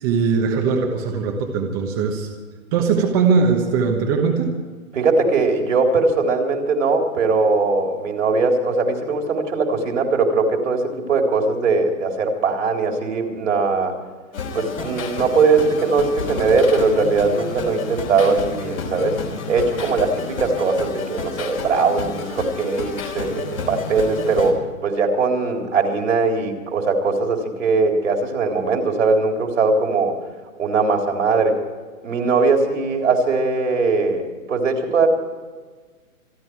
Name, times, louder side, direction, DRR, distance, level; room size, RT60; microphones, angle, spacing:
voice 1, 0.0-2.3 2.7-4.5, right 5 dB, 15° right, 2 dB, 1.1 m, -20 dB
voice 2, 4.9-13.9 14.5-19.2 19.5-30.1 30.6-31.6 32.0-35.1, right 4 dB, 65° right, 3 dB, 3.8 m, -20 dB
sound 1, 14.3-24.5, left 4 dB, 75° left, 4.5 m, -30 dB
27.0 x 11.0 x 4.7 m, 1.4 s
hypercardioid pair, 165°, 41 cm